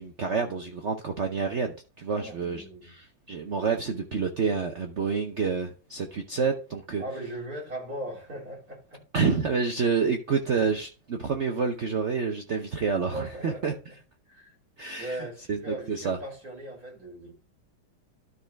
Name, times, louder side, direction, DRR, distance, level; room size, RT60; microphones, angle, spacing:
voice 1, 0.0-7.0 9.1-13.7 14.8-16.2, right 5 dB, 65° right, 0.7 m, -28 dB
voice 2, 2.1-2.9 7.0-9.0 10.5-10.7 13.1-13.8 14.3-14.5 15.0-17.3, right 1 dB, 45° right, 4.0 m, -38 dB
12.5 x 4.2 x 3.5 m
omnidirectional pair, 2.1 m